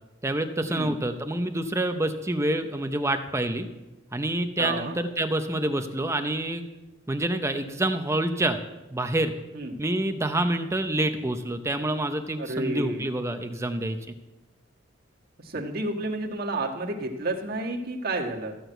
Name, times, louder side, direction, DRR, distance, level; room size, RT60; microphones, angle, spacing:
voice 1, 0.2-3.7 4.1-6.7 7.1-8.6 8.9-9.3 9.8-14.0, right 1 dB, 15° right, 7 dB, 0.7 m, -27 dB
voice 2, 4.6-5.0 9.5-9.8 12.4-13.1 15.4-18.6, right 2 dB, 50° right, 1 dB, 1.6 m, -31 dB
14.0 x 6.2 x 8.0 m, 1.0 s
head